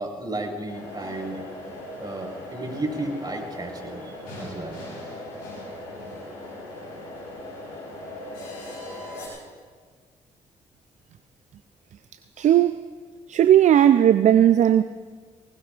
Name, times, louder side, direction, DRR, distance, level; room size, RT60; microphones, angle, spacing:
voice 1, 0.0-1.5 2.0-4.1 4.4-4.8, right 2 dB, 30° right, 4.6 m, -33 dB
sound 1, 0.7-9.3, left 1 dB, 80° left, 4.8 m, -38 dB
voice 2, 12.4-12.8 13.3-14.8, right 10 dB, 55° right, 0.5 m, -16 dB
19.5 x 18.5 x 2.5 m
hypercardioid pair, 45°, 15 cm